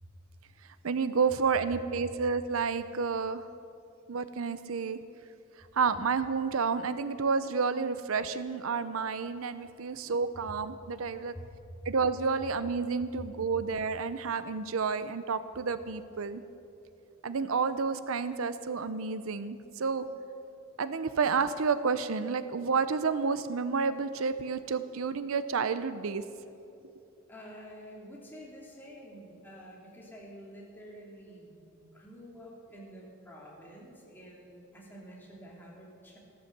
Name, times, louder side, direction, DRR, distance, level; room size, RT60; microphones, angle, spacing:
voice 1, 0.8-3.4 4.1-5.0 5.7-11.3 11.9-16.4 17.2-20.1 20.8-26.2, right 5 dB, 75° right, 13 dB, 0.6 m, -30 dB
voice 2, 27.3-36.2, equal, 10° left, -4 dB, 2.8 m, -49 dB
15.0 x 13.0 x 6.6 m, 2.7 s
head